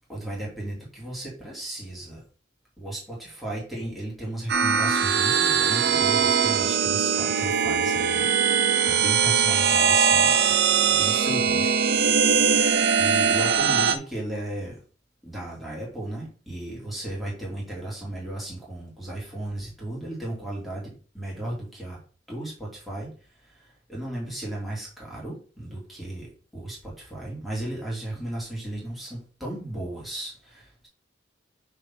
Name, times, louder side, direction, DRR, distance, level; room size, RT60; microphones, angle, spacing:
voice 1, 0.1-2.2 2.8-10.5 10.8-12.4 13.0-14.8 15.2-22.0 22.3-23.1 23.5-23.6 23.9-30.9, right 1 dB, ahead, -6 dB, 2.5 m, -35 dB
sound 1, 4.5-14.0, right 6 dB, 55° right, 0.7 m, -21 dB
5.9 x 3.7 x 5.7 m, 0.39 s
head